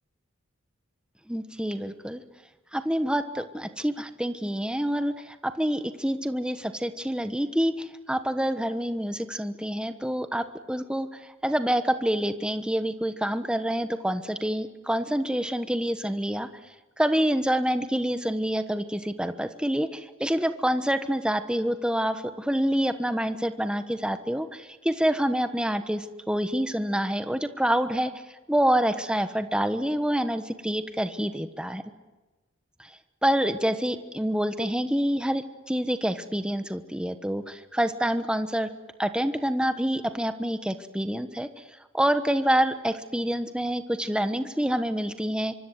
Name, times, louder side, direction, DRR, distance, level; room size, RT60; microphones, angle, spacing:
voice 1, 1.3-2.2 2.7-16.5 17.0-28.1 28.5-31.8 32.8-32.9 33.2-38.7 39.0-41.6 41.9-45.5, equal, 5° right, 10 dB, 1.2 m, -27 dB
25.0 x 25.0 x 8.1 m, 1.2 s
head